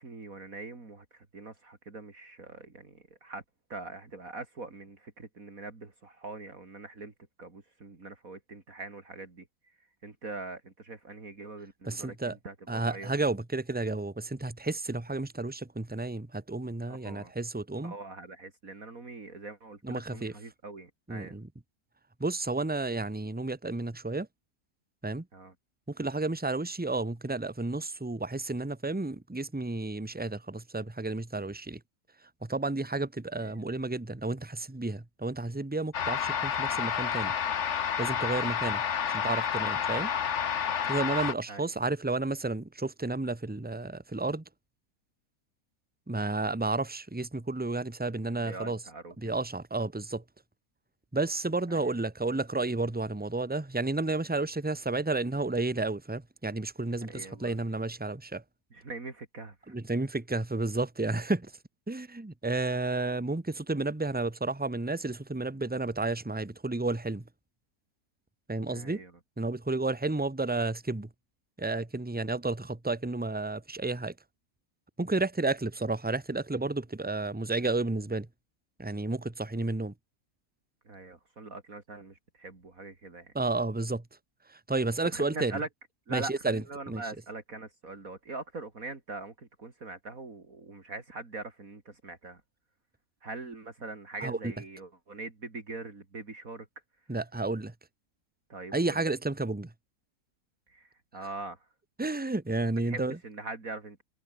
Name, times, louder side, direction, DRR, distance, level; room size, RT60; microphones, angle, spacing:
voice 1, 0.0-3.4 3.7-7.1 7.4-9.5 10.0-13.1 16.9-17.3 17.8-21.4 25.3-25.5 33.4-33.6 41.5-41.7 48.4-49.4 51.7-52.0 57.1-57.6 58.7-59.8 68.7-69.1 80.9-83.3 85.1-85.7 86.1-92.4 93.2-96.7 98.5-99.0 100.7-101.6 102.9-104.0, right 3 dB, 55° right, 3.5 m, -42 dB
voice 2, 11.8-12.4 12.7-17.9 19.8-20.3 21.1-21.5 22.2-24.3 25.0-25.2 25.9-31.8 32.4-37.3 38.0-38.8 39.1-40.1 40.9-44.4 46.1-48.8 49.2-50.2 51.1-58.4 59.7-61.5 61.9-67.2 68.5-69.0 69.4-71.1 71.6-74.1 75.0-78.3 78.8-79.9 83.3-84.0 84.5-85.6 86.1-87.0 94.2-94.5 97.1-97.7 98.7-99.7 102.0-103.2, right 2 dB, 5° right, 1.0 m, -31 dB
sound 1, 35.9-41.3, left 8 dB, 50° left, 1.2 m, -30 dB
omnidirectional pair, 1.7 m